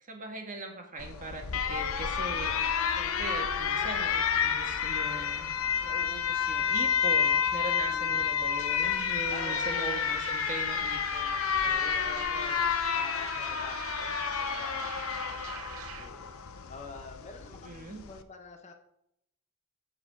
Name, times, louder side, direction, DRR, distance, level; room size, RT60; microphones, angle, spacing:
voice 1, 0.1-5.5 5.8-12.0 17.6-18.0, right 2 dB, 40° right, 3 dB, 1.7 m, -41 dB
Alarm, 1.0-18.2, left 7 dB, 85° left, 0.8 m, -30 dB
voice 2, 7.9-8.3 9.3-10.0 11.6-16.2 16.7-18.7, left 3 dB, 35° left, 4 dB, 1.3 m, -46 dB
sound 1, 8.5-16.1, right 7 dB, 85° right, 0.8 m, -43 dB
8.0 x 8.0 x 4.8 m, 0.76 s
head